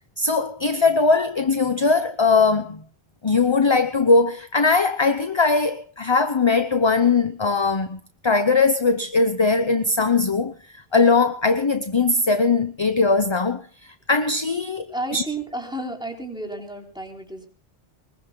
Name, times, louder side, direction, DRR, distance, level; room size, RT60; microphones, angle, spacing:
voice 1, 0.2-2.8 3.2-10.5 10.9-13.6 14.1-14.9 15.1-15.2, left 4 dB, 30° left, 0.9 m, -20 dB
voice 2, 14.9-17.5, right 2 dB, 5° right, 3.9 m, -32 dB
24.0 x 21.5 x 2.3 m
omnidirectional pair, 1.1 m